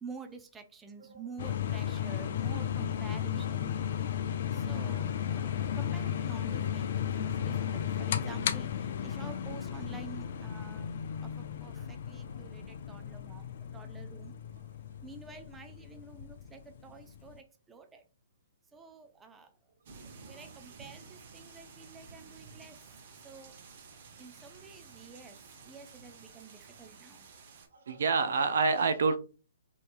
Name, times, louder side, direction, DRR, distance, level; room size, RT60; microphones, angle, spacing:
voice 1, 0.0-3.8 4.5-6.8 7.1-13.4 13.7-14.4 15.0-18.0 18.7-19.5 20.3-23.5 24.2-27.3, right 4 dB, 10° right, 0.4 m, -49 dB
sound 1, 1.4-17.4, left 9 dB, 55° left, 0.3 m, -35 dB
sound 2, 19.8-27.7, right 4 dB, 50° right, 0.8 m, -52 dB
voice 2, 27.9-29.2, right 4 dB, 65° right, 0.5 m, -26 dB
3.3 x 2.8 x 2.5 m
figure-of-eight pair, 130°, 0 cm